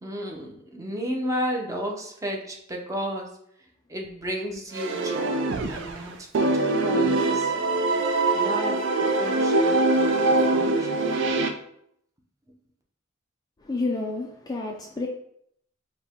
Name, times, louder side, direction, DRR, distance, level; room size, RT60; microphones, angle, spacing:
voice 1, 0.0-3.3 3.9-5.4 5.7-7.5 8.3-8.8 9.2-11.1, equal, 15° right, 0 dB, 0.7 m, -33 dB
sound 1, 4.7-6.0 6.3-11.5, right 2 dB, 60° right, 0.5 m, -23 dB
voice 2, 13.6-15.1, left 3 dB, 20° left, 0 dB, 0.4 m, -29 dB
4.7 x 2.2 x 3.5 m, 0.70 s
head